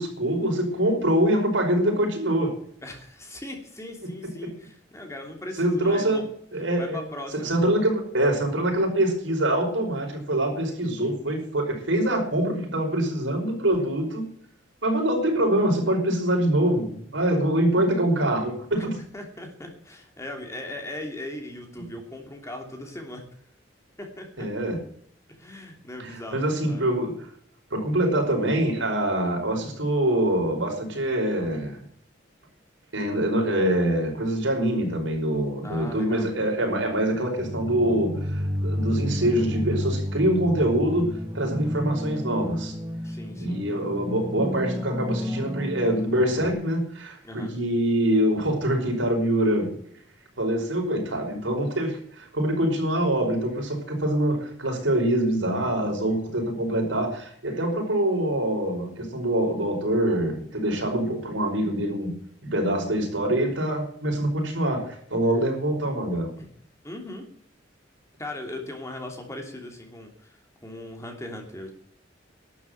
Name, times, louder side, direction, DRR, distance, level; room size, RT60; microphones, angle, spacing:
voice 1, 0.0-2.5 4.4-4.5 5.6-6.2 6.5-7.0 7.4-14.3 14.8-19.0 24.4-24.8 26.0-27.1 27.7-31.8 32.9-42.7 43.4-49.7 50.4-66.3, right 1 dB, 90° right, 1 dB, 5.5 m, -24 dB
voice 2, 2.8-6.3 6.8-7.5 18.8-18.9 19.1-23.2 24.0-24.5 25.3-26.9 35.6-36.3 43.0-43.6 47.2-47.5 66.4-66.5 66.8-67.3 68.2-71.7, left 1 dB, 15° left, 2 dB, 3.0 m, -39 dB
sound 1, 37.4-46.5, equal, 20° right, 1.4 m, -31 dB
12.0 x 8.5 x 9.4 m, 0.62 s
head